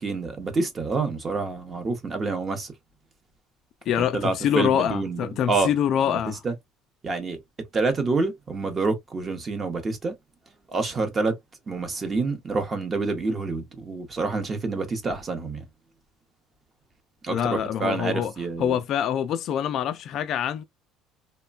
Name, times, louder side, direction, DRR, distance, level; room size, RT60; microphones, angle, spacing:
voice 1, 0.0-2.7 4.0-5.7 6.1-6.5 7.0-7.4 7.7-10.1 10.7-11.3 11.7-15.6 17.2-18.8, right 3 dB, 25° right, 0.7 m, -27 dB
voice 2, 3.9-6.4 17.3-18.3 18.6-20.6, left 9 dB, 50° left, 0.3 m, -25 dB
3.1 x 2.1 x 2.3 m
cardioid pair, 135°, 0 cm